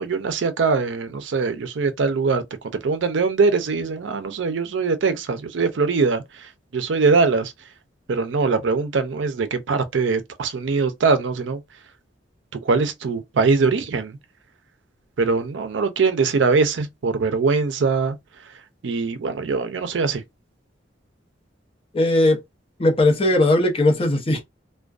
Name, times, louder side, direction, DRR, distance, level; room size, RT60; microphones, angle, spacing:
voice 1, 0.0-2.4 2.8-7.5 8.1-11.6 12.5-14.2 15.2-18.2 18.8-20.2, right 4 dB, 75° right, 0.5 m, -22 dB
voice 2, 21.9-22.4 22.8-24.4, left 1 dB, 30° left, 0.7 m, -18 dB
2.4 x 2.2 x 2.3 m
head